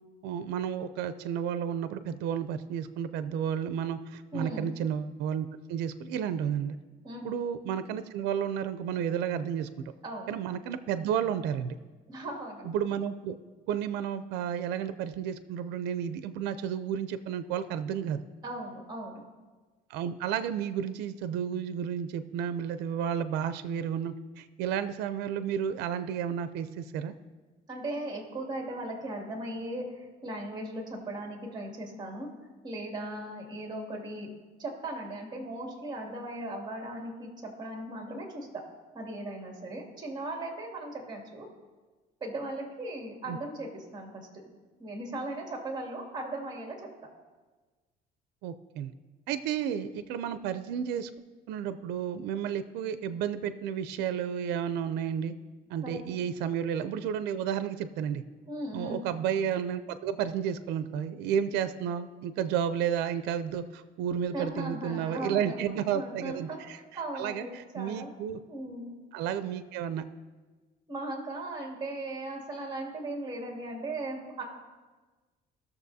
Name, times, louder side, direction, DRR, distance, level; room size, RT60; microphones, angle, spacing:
voice 1, 0.2-6.8 7.2-9.7 10.3-11.7 12.6-13.4 13.7-18.2 19.9-27.1 43.3-43.4 48.4-48.9 49.3-51.1 51.5-55.3 55.7-58.2 58.7-66.8 67.1-68.4 69.1-70.1, right 8 dB, 90° right, 12 dB, 0.5 m, -32 dB
voice 2, 4.3-4.7 7.0-7.2 10.0-10.3 12.1-12.7 18.4-19.2 27.7-32.3 32.6-34.3 34.6-38.6 38.9-41.5 42.2-44.3 44.8-46.9 55.8-56.0 58.5-59.0 64.3-68.1 68.5-68.9 70.9-74.4, right 1 dB, 25° right, 0 dB, 2.4 m, -38 dB
18.5 x 6.8 x 2.7 m, 1.3 s
cardioid pair, 110°, 17 cm